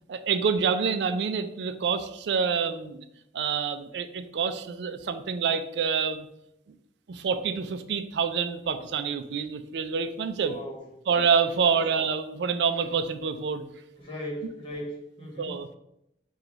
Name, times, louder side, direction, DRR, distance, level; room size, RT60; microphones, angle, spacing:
voice 1, 0.1-3.1 3.3-6.3 7.1-10.6 11.1-13.7 15.4-15.8, right 6 dB, 70° right, 10 dB, 0.4 m, -27 dB
voice 2, 10.4-10.9 11.7-11.8 14.0-15.5, equal, 30° left, -2 dB, 1.2 m, -37 dB
4.8 x 2.3 x 3.9 m, 0.80 s
head